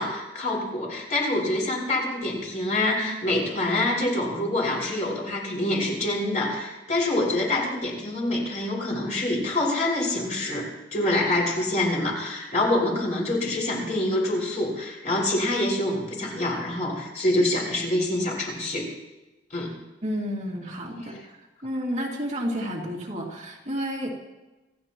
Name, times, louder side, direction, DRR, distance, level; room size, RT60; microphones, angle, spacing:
voice 1, 0.0-18.9 19.5-19.7, left 1 dB, 40° left, -3 dB, 5.6 m, -26 dB
voice 2, 20.0-21.4 21.6-24.1, equal, 40° right, -2 dB, 2.4 m, -31 dB
26.5 x 14.5 x 3.0 m, 1.1 s
head